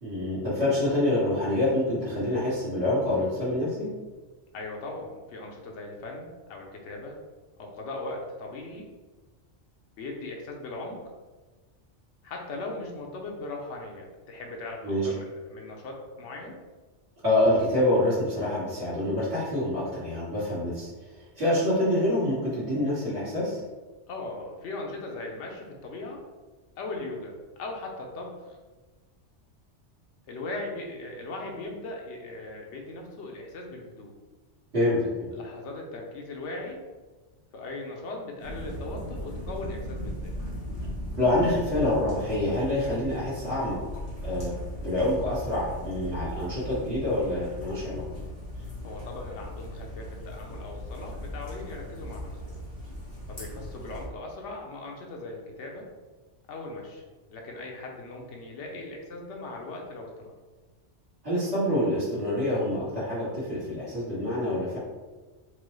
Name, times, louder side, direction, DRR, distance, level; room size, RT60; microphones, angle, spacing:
voice 1, 0.0-3.9 14.8-15.1 17.2-20.9 21.3-23.6 34.7-35.3 41.1-43.8 44.2-44.5 44.8-48.0 61.2-64.8, left 1 dB, 70° right, -15 dB, 2.0 m, -26 dB
voice 2, 4.5-7.1 7.6-8.9 10.0-11.0 12.2-16.6 24.1-26.2 26.8-27.3 27.6-28.6 30.3-34.1 35.3-36.8 37.5-40.3 48.8-52.6 53.3-55.9 56.5-57.0 57.3-60.3, left 2 dB, 80° left, 0 dB, 1.0 m, -39 dB
sound 1, 38.4-54.1, equal, 35° left, 1.0 m, -38 dB
4.5 x 2.2 x 3.1 m, 1.3 s
omnidirectional pair, 1.2 m